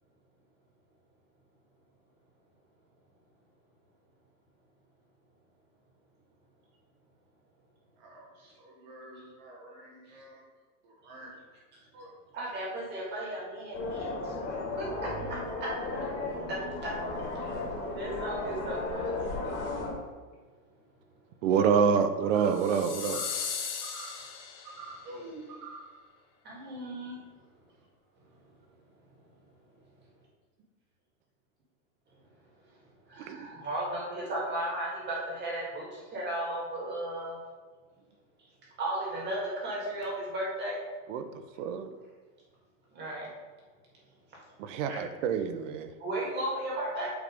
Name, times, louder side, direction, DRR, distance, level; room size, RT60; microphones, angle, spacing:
voice 1, 8.0-10.4 10.8-11.6 11.9-12.1 25.0-25.5, right 1 dB, 40° right, -2 dB, 1.3 m, -48 dB
voice 2, 12.3-14.1 14.8-15.1 15.9-16.0 18.0-19.0 26.5-27.2 33.2-37.3 38.8-40.8 43.0-43.2 44.9-45.0 46.0-47.1, right 1 dB, 25° right, -4 dB, 2.2 m, -35 dB
sound 1, 13.7-19.9, left 2 dB, 30° left, 2.0 m, -35 dB
voice 3, 21.4-23.2 33.3-33.5 41.1-41.9 44.6-45.9, right 6 dB, 55° right, 9 dB, 0.7 m, -27 dB
sound 2, 22.2-22.7 23.0-23.4 23.8-24.2 24.6-25.1 25.5-25.9, right 4 dB, 75° right, 1.7 m, -45 dB
sound 3, 22.5-25.0, left 7 dB, 60° left, 1.4 m, -37 dB
8.2 x 3.4 x 5.2 m, 1.4 s
supercardioid pair, 165°, 45 cm